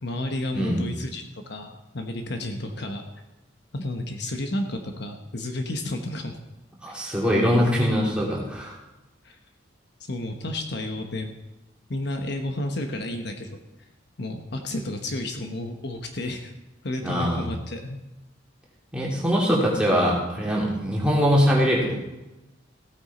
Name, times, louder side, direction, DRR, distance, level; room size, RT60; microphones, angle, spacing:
voice 1, 0.0-3.0 3.7-6.4 6.9-7.1 9.2-9.4 10.0-11.3 11.9-13.5 14.2-16.5 16.8-18.0, left 1 dB, 60° left, 4 dB, 1.1 m, -31 dB
voice 2, 0.5-0.9 6.8-8.8 17.0-17.4 18.9-21.9, equal, 5° right, -4 dB, 3.0 m, -22 dB
16.0 x 9.0 x 4.3 m, 1.0 s
head